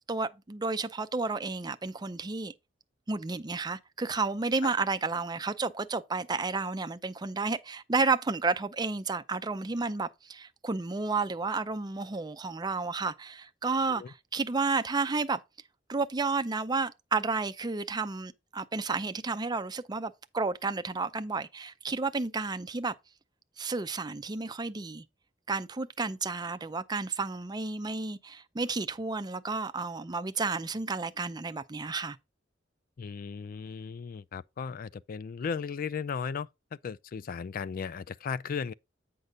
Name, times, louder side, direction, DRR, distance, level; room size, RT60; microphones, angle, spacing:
voice 1, 0.1-2.5 3.1-15.4 15.9-22.9 23.6-25.0 25.5-32.2, right 4 dB, 20° right, 0.5 m, -31 dB
voice 2, 33.0-38.7, left 6 dB, 50° left, 0.3 m, -36 dB
8.1 x 5.4 x 3.7 m
head